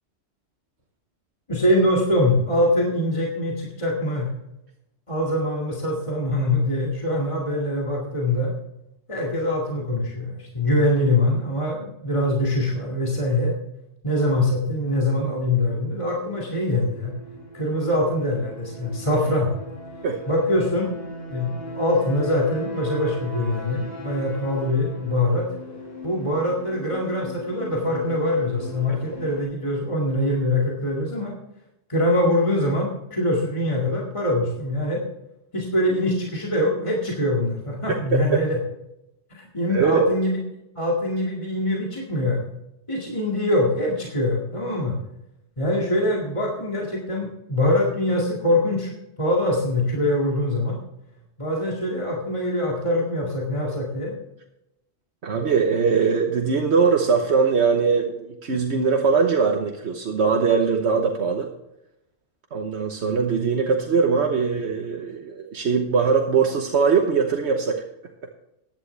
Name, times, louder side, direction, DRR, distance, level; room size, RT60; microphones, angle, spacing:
voice 1, 1.5-4.3 5.1-8.5 9.1-13.5 14.0-17.2 17.5-19.5 20.3-20.9 21.3-25.5 26.0-31.3 31.9-35.0 35.5-38.6 39.3-40.4 40.8-42.5 42.9-44.9 45.6-48.9 49.2-50.8 51.4-54.2, left 1 dB, 30° left, -3 dB, 2.1 m, -23 dB
sound 1, 15.2-29.4, equal, 60° left, 2.5 m, -38 dB
voice 2, 37.9-38.4 39.7-40.0 55.2-61.5 62.5-67.8, right 5 dB, 75° right, 3 dB, 1.3 m, -21 dB
15.0 x 10.5 x 3.3 m, 0.88 s
omnidirectional pair, 1.1 m